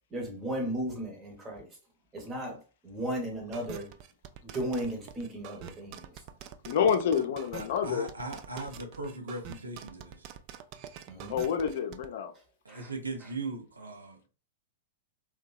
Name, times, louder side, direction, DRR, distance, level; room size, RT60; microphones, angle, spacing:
voice 1, 0.1-1.7 2.1-3.9 4.4-6.2 11.1-11.3 12.7-12.9, right 1 dB, 20° right, 1.0 m, -35 dB
sound 1, 3.5-12.1, right 9 dB, 45° right, 0.3 m, -45 dB
voice 2, 6.6-8.1 11.3-12.3, left 7 dB, 60° left, 0.5 m, -28 dB
voice 3, 7.5-10.3 12.6-14.3, right 2 dB, 85° right, 0.6 m, -39 dB
2.7 x 2.2 x 2.3 m
hypercardioid pair, 105°, 0 cm